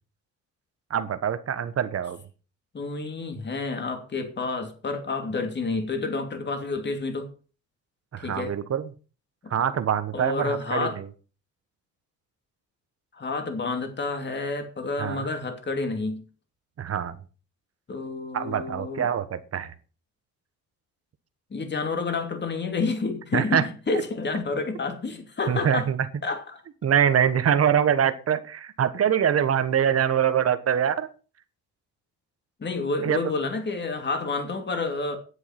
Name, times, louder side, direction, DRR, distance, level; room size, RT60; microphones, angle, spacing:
voice 1, 0.9-2.2 8.1-8.9 9.5-11.1 15.0-15.3 16.8-17.1 18.3-19.7 23.3-23.7 25.5-26.0 26.8-31.1 33.0-33.2, right 8 dB, 55° right, 1.4 m, -24 dB
voice 2, 2.7-7.3 8.2-8.5 9.4-9.5 10.1-11.0 13.1-16.2 17.9-19.1 21.5-25.9 26.2-26.6 32.6-35.2, left 3 dB, 35° left, 2.8 m, -29 dB
10.0 x 8.2 x 6.0 m
cardioid pair, 90°, 30 cm